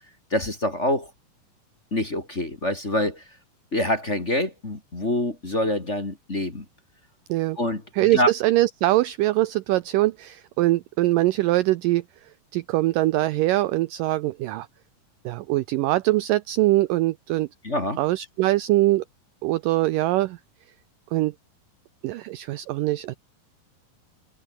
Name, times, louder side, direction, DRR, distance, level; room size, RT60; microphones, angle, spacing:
voice 1, 0.3-1.1 1.9-3.2 3.7-6.6 7.6-8.3 17.6-18.0, left 1 dB, 20° left, 2.5 m, -26 dB
voice 2, 8.0-12.0 12.5-14.7 15.3-17.5 18.0-19.0 19.4-20.4 21.1-21.3 22.0-23.1, right 17 dB, 80° right, 2.0 m, -22 dB
omnidirectional pair, 4.6 m